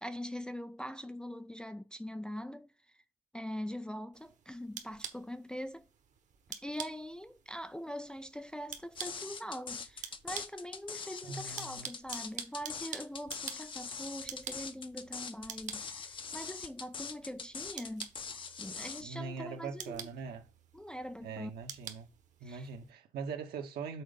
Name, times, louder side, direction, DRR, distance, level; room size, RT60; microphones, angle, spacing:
voice 1, 0.0-3.0 3.3-5.9 6.6-18.1 18.6-20.1 20.7-21.5 22.4-22.7, equal, 5° left, 0.4 m, -43 dB
sound 1, 4.1-22.9, right 7 dB, 45° right, 1.3 m, -48 dB
sound 2, 9.0-19.0, left 5 dB, 30° left, 0.7 m, -42 dB
voice 2, 11.2-11.9 19.0-20.5 21.2-22.1 22.4-24.0, right 5 dB, 65° right, 1.6 m, -42 dB
6.4 x 3.9 x 5.3 m
cardioid pair, 110°, 17 cm